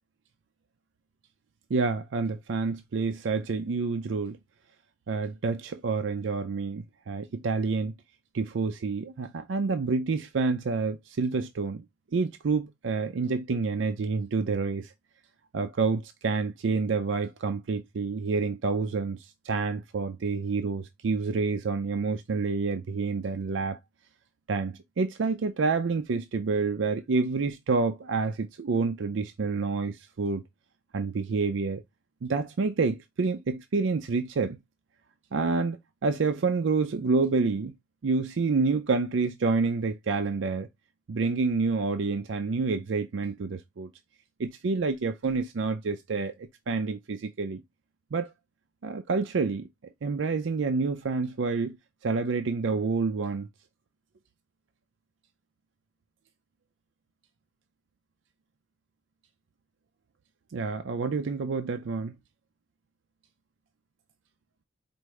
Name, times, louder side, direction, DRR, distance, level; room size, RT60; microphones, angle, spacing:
voice 1, 1.7-4.4 5.1-7.9 8.3-11.8 12.1-14.9 15.5-19.2 19.4-23.8 24.5-30.4 30.9-31.8 32.2-34.6 35.3-37.7 38.0-40.7 41.1-43.9 44.4-46.3 46.7-47.6 48.1-48.3 48.8-49.7 50.0-51.8 52.0-53.5 60.5-62.2, right 4 dB, 70° right, 0.4 m, -28 dB
4.7 x 2.6 x 3.1 m
head